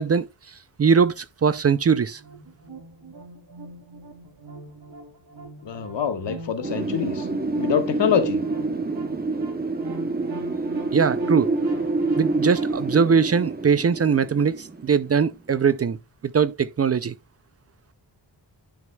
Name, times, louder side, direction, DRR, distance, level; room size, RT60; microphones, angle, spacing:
voice 1, 0.0-2.2 10.9-11.5 12.2-17.1, right 6 dB, 35° right, 0.4 m, -21 dB
sound 1, 1.4-12.7, right 2 dB, 60° right, 2.3 m, -42 dB
voice 2, 5.6-7.3 7.6-8.4, left 7 dB, 80° left, 1.4 m, -25 dB
Wind, 6.6-15.3, right 3 dB, 20° right, 0.8 m, -27 dB
10.5 x 6.1 x 2.2 m
wide cardioid pair, 115°, 43 cm